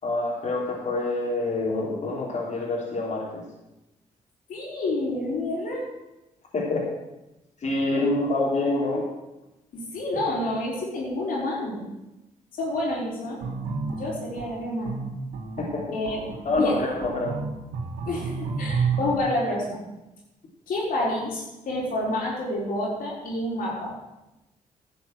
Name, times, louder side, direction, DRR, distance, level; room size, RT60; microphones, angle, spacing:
voice 1, 0.0-3.4 6.5-6.8 7.6-9.0 15.7-15.8 16.4-17.3, left 2 dB, 55° left, -5 dB, 3.4 m, -26 dB
voice 2, 4.5-5.8 8.0-8.1 9.7-11.8 12.6-13.4 13.9-14.9 15.9-16.8 18.1-19.8 20.7-23.9, left 1 dB, 75° left, -3 dB, 4.1 m, -29 dB
sound 1, 13.4-19.2, right 5 dB, 85° right, 1.6 m, -31 dB
11.5 x 6.5 x 7.7 m, 0.98 s
supercardioid pair, 60°, 14 cm